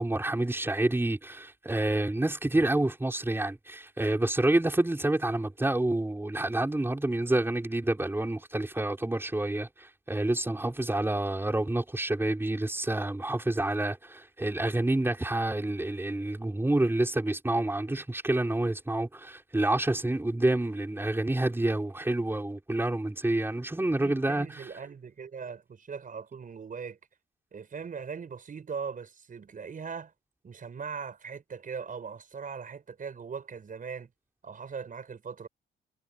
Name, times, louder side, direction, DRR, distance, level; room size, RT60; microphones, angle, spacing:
voice 1, 0.0-24.7, right 2 dB, 10° right, 5.2 m, -28 dB
voice 2, 24.0-27.0 27.5-30.1 30.4-34.1 34.4-35.5, right 6 dB, 45° right, 6.1 m, -40 dB
cardioid pair, 90°, 20 cm